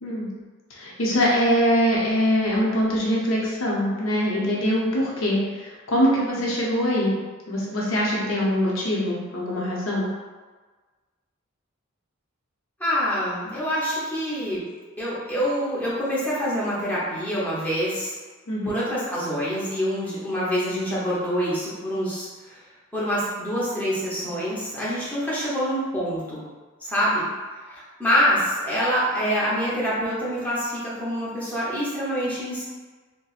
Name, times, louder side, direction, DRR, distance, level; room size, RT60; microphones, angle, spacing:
voice 1, 0.7-7.2 7.5-10.1 18.5-18.7, equal, 85° left, -4 dB, 0.7 m, -23 dB
voice 2, 12.8-14.6 15.0-18.1 18.6-22.6 22.9-26.4 26.8-27.3 27.7-32.6, equal, 10° left, -9 dB, 0.8 m, -26 dB
4.1 x 2.1 x 2.4 m, 1.4 s
head